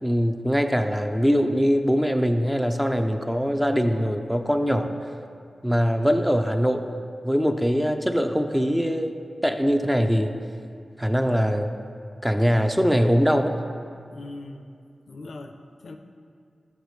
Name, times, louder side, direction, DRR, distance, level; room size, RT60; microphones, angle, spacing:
voice 1, 0.0-4.9 5.6-7.0 7.2-9.1 9.4-10.3 11.0-11.7 12.2-13.5, equal, 5° right, 6 dB, 0.4 m, -22 dB
voice 2, 14.1-14.7 15.1-16.0, left 2 dB, 65° left, 6 dB, 0.5 m, -40 dB
11.0 x 6.6 x 3.1 m, 2.4 s
wide cardioid pair, 105°, 0 cm